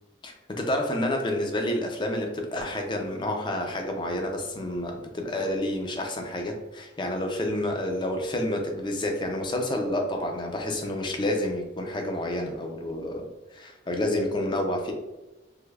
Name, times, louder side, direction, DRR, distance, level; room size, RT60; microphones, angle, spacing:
voice 1, 0.2-13.3 13.5-14.9, left 1 dB, 25° left, 3 dB, 0.4 m, -29 dB
3.2 x 3.0 x 2.3 m, 1.1 s
head